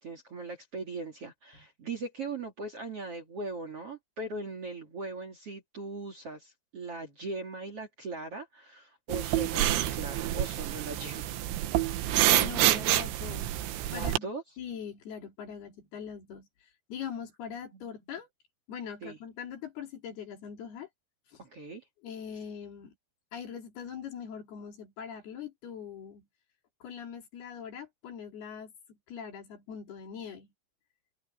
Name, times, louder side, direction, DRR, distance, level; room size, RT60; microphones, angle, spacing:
voice 1, 0.0-11.4 13.9-14.4 17.7-17.8 19.0-19.2 21.4-21.8, right 3 dB, 40° right, 2.8 m, -39 dB
sound 1, 9.1-14.2, right 14 dB, 80° right, 3.5 m, -27 dB
voice 2, 12.4-13.6 13.9-14.3 14.6-18.3 18.7-20.9 21.3-21.4 22.0-22.9 23.3-26.3 26.8-30.5, left 7 dB, 60° left, 4.9 m, -42 dB
open air
omnidirectional pair, 5.3 m